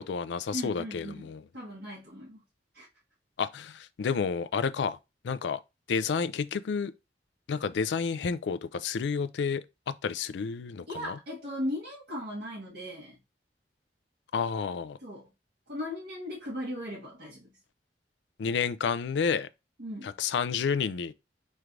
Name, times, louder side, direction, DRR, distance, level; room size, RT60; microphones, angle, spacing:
voice 1, 0.0-1.4 3.4-5.0 5.2-5.6 5.9-6.9 7.5-11.2 14.3-15.0 18.4-19.5 20.0-21.1, left 6 dB, 80° left, 0.4 m, -30 dB
voice 2, 0.5-2.4 2.7-2.9 10.9-13.2 15.0-15.3 15.7-17.6 19.8-20.2, equal, 60° right, 1.1 m, -38 dB
4.5 x 3.2 x 2.5 m
head